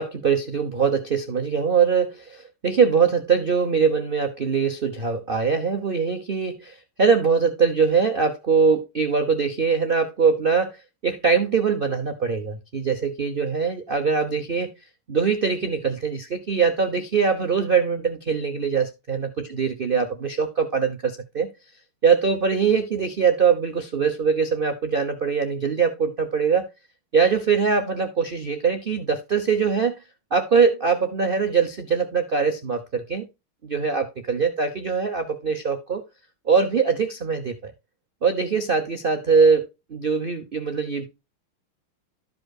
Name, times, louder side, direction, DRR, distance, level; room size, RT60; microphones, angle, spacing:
voice 1, 0.0-14.7 15.1-21.5 22.0-26.7 27.1-30.0 30.3-33.3 33.6-36.0 36.5-37.7 38.2-41.1, right 5 dB, 85° right, 0.4 m, -22 dB
13.5 x 5.3 x 2.3 m
omnidirectional pair, 2.3 m